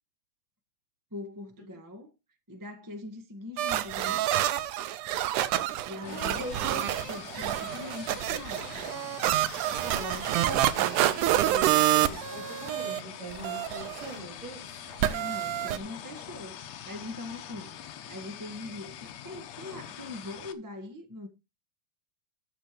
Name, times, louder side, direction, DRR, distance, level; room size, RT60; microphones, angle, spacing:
voice 1, 1.1-2.1 2.5-4.3 5.8-8.9 15.0-17.8 18.1-21.3, left 2 dB, 20° right, 0.5 m, -42 dB
sound 1, 3.6-13.0 13.3-14.2 15.0-15.8, right 13 dB, 75° right, 2.2 m, -28 dB
sound 2, 6.0-20.5, left 10 dB, 65° left, 1.9 m, -44 dB
voice 2, 6.1-6.9 9.8-14.8, right 1 dB, 55° right, 5.1 m, -41 dB
13.5 x 5.3 x 5.0 m
omnidirectional pair, 3.7 m